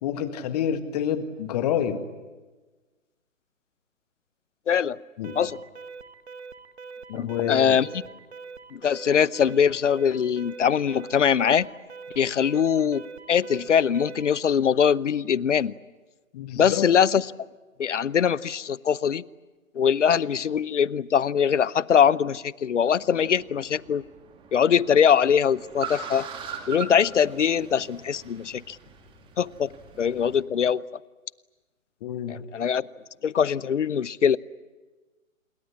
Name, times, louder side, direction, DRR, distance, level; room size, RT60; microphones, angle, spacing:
voice 1, 0.0-2.1 5.2-5.4 7.1-7.8 16.3-16.8 32.0-32.4, left 9 dB, 30° left, 11 dB, 1.8 m, -28 dB
voice 2, 4.7-5.0 5.4-5.6 7.1-7.9 8.7-11.7 12.2-13.0 13.3-15.7 16.5-17.3 17.8-19.2 19.7-24.1 24.5-26.3 26.7-28.8 29.4-29.7 30.0-30.8 32.3-32.8 33.2-34.4, left 8 dB, 60° left, 23 dB, 0.8 m, -22 dB
Alarm, 5.2-14.4, right 5 dB, 50° right, 1.4 m, -43 dB
Car, 23.0-30.4, right 7 dB, 10° right, 2.3 m, -41 dB
27.5 x 22.5 x 9.7 m, 1.2 s
figure-of-eight pair, 135°, 41 cm